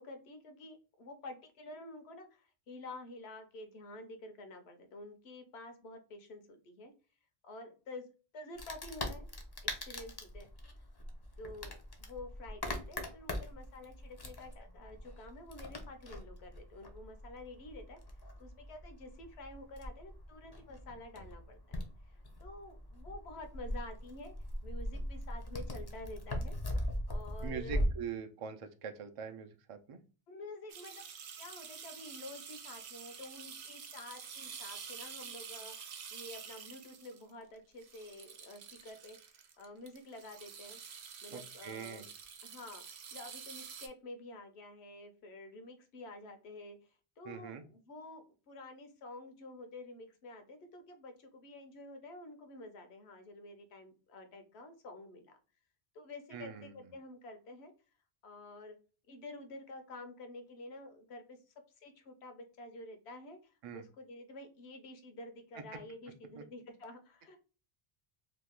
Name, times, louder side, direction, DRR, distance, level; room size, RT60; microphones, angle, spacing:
voice 1, 0.0-6.9 7.4-8.1 8.3-9.3 9.7-10.5 11.4-18.0 18.4-21.8 22.4-24.3 24.6-26.6 27.1-27.9 30.3-39.3 39.6-40.8 41.2-42.1 42.4-46.8 47.2-55.3 55.9-57.7 58.2-58.8 59.1-61.4 61.8-67.4, left 2 dB, 85° left, 7 dB, 1.0 m, -49 dB
Wood, 8.6-27.9, left 1 dB, 30° left, 0.5 m, -41 dB
voice 2, 27.4-30.0 41.3-42.1 47.3-47.6 56.3-56.8 63.6-63.8 65.6-65.7 66.3-66.4, right 7 dB, 50° right, 7 dB, 0.4 m, -43 dB
sound 1, 30.7-43.9, right 7 dB, 85° right, 0.9 m, -48 dB
2.9 x 2.3 x 3.5 m, 0.35 s
omnidirectional pair, 1.1 m